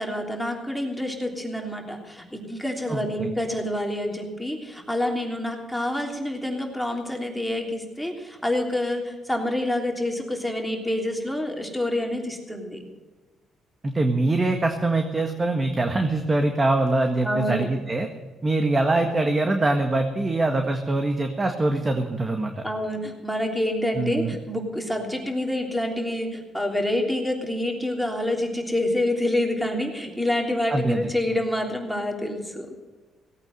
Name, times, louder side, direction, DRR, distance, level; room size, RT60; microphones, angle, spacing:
voice 1, 0.0-12.8 17.2-17.7 22.6-32.7, left 1 dB, ahead, 1 dB, 3.3 m, -27 dB
voice 2, 2.9-3.3 13.8-18.1 18.4-22.6 23.9-24.4 30.7-31.1, right 2 dB, 30° right, 5 dB, 1.6 m, -23 dB
17.5 x 8.9 x 7.8 m, 1.3 s
supercardioid pair, 75°, 0 cm